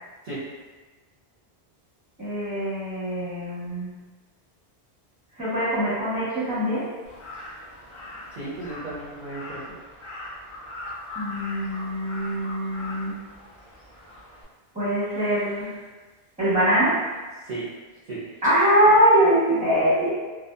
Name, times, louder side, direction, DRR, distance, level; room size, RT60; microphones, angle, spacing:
voice 1, 2.2-4.0 5.4-6.9 11.2-13.2 14.7-15.7 16.4-17.1 18.4-20.1, equal, 10° right, -10 dB, 0.8 m, -22 dB
Crow, 7.0-14.4, left 1 dB, 20° left, 0.5 m, -40 dB
voice 2, 8.3-9.8 17.4-17.7 18.1-18.3, right 2 dB, 50° right, -9 dB, 0.6 m, -34 dB
2.6 x 2.1 x 2.2 m, 1.3 s
omnidirectional pair, 1.1 m